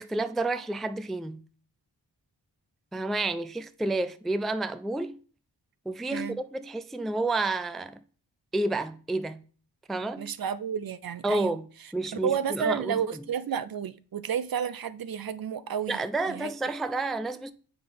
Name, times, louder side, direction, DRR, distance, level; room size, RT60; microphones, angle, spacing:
voice 1, 0.0-1.4 2.9-5.2 5.9-8.0 8.5-9.4 9.9-10.3 11.2-11.7 11.9-13.2 15.9-17.5, right 2 dB, ahead, 0.3 m, -30 dB
voice 2, 10.2-11.6 12.2-16.5, right 8 dB, 55° right, 0.5 m, -31 dB
8.0 x 3.9 x 5.1 m
wide cardioid pair, 65°, 43 cm